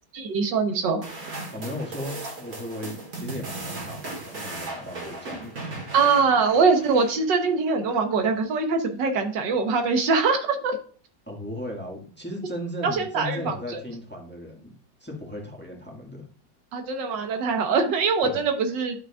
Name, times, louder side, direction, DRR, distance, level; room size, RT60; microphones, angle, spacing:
voice 1, 0.1-1.1 5.9-10.8 12.8-13.5 16.7-18.9, right 4 dB, 85° right, 6 dB, 1.7 m, -23 dB
sound 1, 1.0-7.6, right 2 dB, 50° right, 2.3 m, -37 dB
voice 2, 1.5-5.5 11.3-14.7 15.0-16.3 18.2-18.4, left 1 dB, 5° left, -1 dB, 1.5 m, -36 dB
11.5 x 6.0 x 2.3 m, 0.42 s
omnidirectional pair, 1.9 m